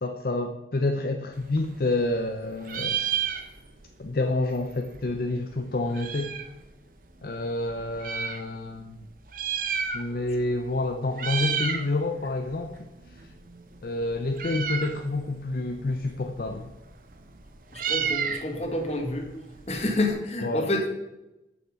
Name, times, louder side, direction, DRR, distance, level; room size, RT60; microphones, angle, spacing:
voice 1, 0.0-3.0 4.0-6.3 7.2-9.0 9.9-12.7 13.1-13.2 13.8-16.7 20.4-20.7, left 2 dB, 55° left, 4 dB, 0.6 m, -28 dB
Meow, 1.4-2.3 2.6-3.9 4.2-4.3 4.4-6.6 7.2-8.4 9.2-10.4 10.6-10.9 11.1-11.9 12.2-20.1, right 7 dB, 50° right, 0.8 m, -32 dB
voice 2, 17.7-19.3 19.7-20.9, left 1 dB, 35° left, 2 dB, 1.5 m, -28 dB
7.2 x 6.6 x 6.3 m, 0.98 s
head